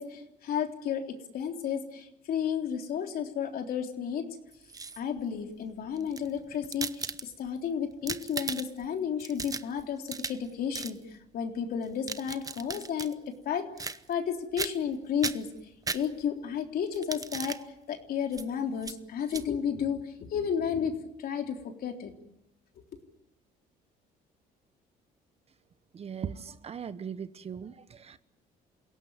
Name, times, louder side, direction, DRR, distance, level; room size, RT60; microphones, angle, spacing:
voice 1, 0.0-4.3 5.0-15.5 15.9-17.6 17.9-22.1, left 7 dB, 60° left, 4 dB, 3.6 m, -32 dB
sound 1, 4.5-5.2 6.0-7.6 7.9-8.9 9.2-10.5 10.7-11.0 11.8-13.1 13.8-14.3 14.6-14.9 15.2-16.4 16.9-17.6 18.3-18.5 18.8-19.0 19.3-19.4, right 4 dB, 20° right, 0.9 m, -37 dB
voice 2, 25.9-28.2, right 7 dB, 35° right, 13 dB, 1.2 m, -39 dB
28.5 x 17.0 x 9.6 m, 0.87 s
cardioid pair, 110°, 17 cm